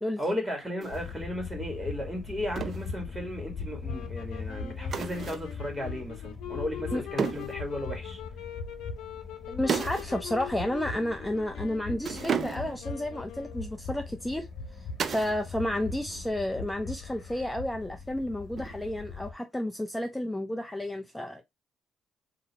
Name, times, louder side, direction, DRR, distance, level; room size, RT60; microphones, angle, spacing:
voice 1, 0.2-8.2, left 1 dB, 5° right, 2.1 m, -35 dB
sound 1, 0.8-1.0 2.6-2.9 4.9-5.5 7.2-7.6 9.7-10.1 10.4-10.5 12.0-12.9 15.0-15.4 15.7-16.2 18.6-19.0, right 6 dB, 50° right, 0.6 m, -33 dB
sound 2, 0.9-19.3, left 4 dB, 60° left, 1.3 m, -40 dB
sound 3, 3.8-13.8, left 10 dB, 85° left, 0.7 m, -43 dB
voice 2, 9.5-21.4, left 1 dB, 10° left, 0.5 m, -32 dB
3.9 x 2.8 x 4.2 m
cardioid pair, 90°, 0 cm